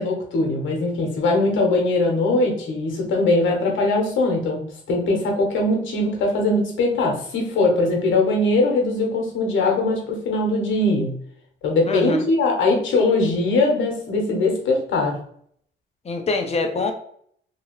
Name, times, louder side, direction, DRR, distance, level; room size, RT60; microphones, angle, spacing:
voice 1, 0.0-11.2 11.6-15.2, left 2 dB, 75° left, 1 dB, 1.1 m, -21 dB
voice 2, 11.9-12.2 16.0-16.9, left 3 dB, 30° left, 5 dB, 0.6 m, -24 dB
2.9 x 2.7 x 3.0 m, 0.64 s
cardioid pair, 90°, 20 cm